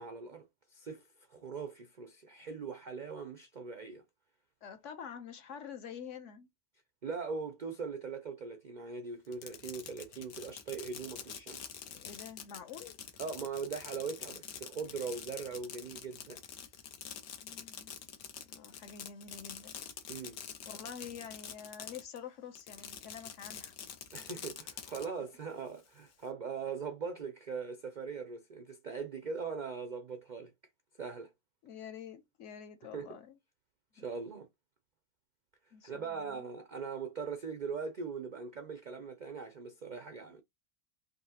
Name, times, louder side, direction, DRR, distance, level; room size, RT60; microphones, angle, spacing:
voice 1, 0.0-4.0 7.0-11.7 13.2-16.4 20.1-20.4 24.1-30.5 31.0-31.3 32.9-33.1 33.9-34.5 35.8-40.4, right 5 dB, 75° right, 0.4 m, -41 dB
voice 2, 4.6-6.5 11.9-13.0 17.4-18.0 18.4-19.8 20.7-23.7 31.6-33.4 35.7-36.5, left 7 dB, 65° left, 1.0 m, -47 dB
Fireworks, 9.2-22.2 22.5-25.1, left 8 dB, 85° left, 1.3 m, -46 dB
5.1 x 2.7 x 2.8 m
omnidirectional pair, 1.5 m